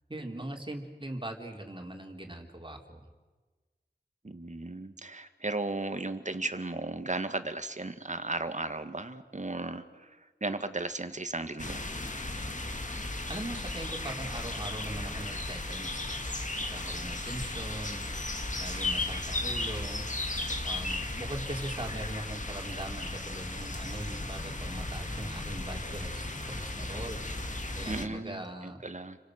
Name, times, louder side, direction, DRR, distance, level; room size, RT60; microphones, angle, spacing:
voice 1, 0.1-3.0 13.3-16.3 16.7-18.2 18.6-20.1 20.6-27.2 27.5-28.8, right 1 dB, 30° right, 2 dB, 3.7 m, -41 dB
voice 2, 4.2-11.8 27.9-29.2, right 2 dB, 45° right, 9 dB, 1.9 m, -35 dB
sound 1, 11.6-28.0, left 2 dB, 45° left, 2.2 m, -35 dB
30.0 x 24.5 x 6.6 m, 1.3 s
wide cardioid pair, 50°, 17 cm